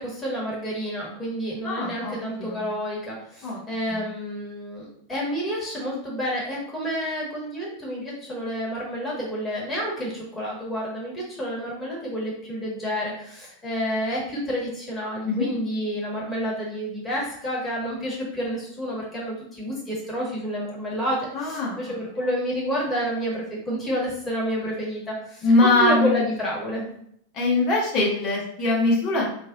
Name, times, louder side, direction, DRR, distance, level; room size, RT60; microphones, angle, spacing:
voice 1, 0.0-26.9, equal, 15° left, -5 dB, 1.5 m, -29 dB
voice 2, 1.6-2.6 3.4-3.6 3.9-4.0 15.2-15.5 21.3-21.8 25.4-26.2 27.3-29.3, left 2 dB, 35° left, -3 dB, 1.0 m, -22 dB
3.0 x 2.4 x 3.8 m, 0.68 s
figure-of-eight pair, 90°, 0 cm